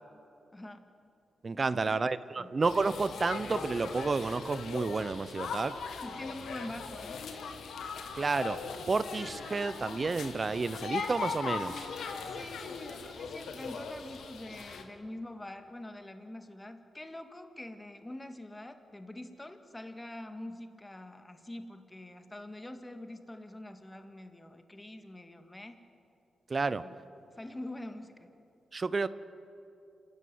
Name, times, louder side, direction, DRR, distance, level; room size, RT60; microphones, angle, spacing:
voice 1, 0.5-0.8 1.7-2.0 2.4-2.5 6.0-7.2 12.3-25.8 26.7-26.9 27.4-28.3, left 1 dB, 20° left, 7 dB, 2.1 m, -45 dB
voice 2, 1.4-5.8 8.1-8.6 8.9-11.9 26.5-26.8 28.7-29.1, right 4 dB, 45° right, 15 dB, 0.8 m, -31 dB
sound 1, 2.6-14.8, left 5 dB, 80° left, 2.0 m, -39 dB
27.5 x 13.5 x 9.5 m, 2.7 s
cardioid pair, 55°, 0 cm